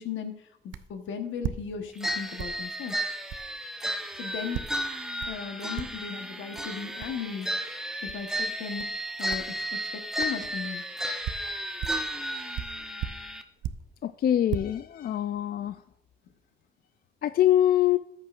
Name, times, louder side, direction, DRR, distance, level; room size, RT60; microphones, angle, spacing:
voice 1, 0.0-2.9 4.1-4.6 5.2-7.5 8.0-10.8, left 6 dB, 75° left, 6 dB, 1.3 m, -37 dB
sound 1, 0.7-1.0 1.4-2.1 2.4-2.6 3.3-3.5 4.5-4.8 5.2-5.5 5.8-6.1 6.6-6.7 7.0-7.2 8.1-8.2 8.8-9.0 9.3-9.5 10.2-10.4 11.0-12.1 12.5-14.0 14.3-14.6, right 10 dB, 70° right, 0.5 m, -36 dB
sound 2, 2.0-13.4, right 1 dB, ahead, 0.9 m, -33 dB
voice 2, 14.0-15.7 17.2-18.0, left 12 dB, 50° left, 11 dB, 0.4 m, -24 dB
13.5 x 8.3 x 2.5 m, 0.73 s
cardioid pair, 90°, 20 cm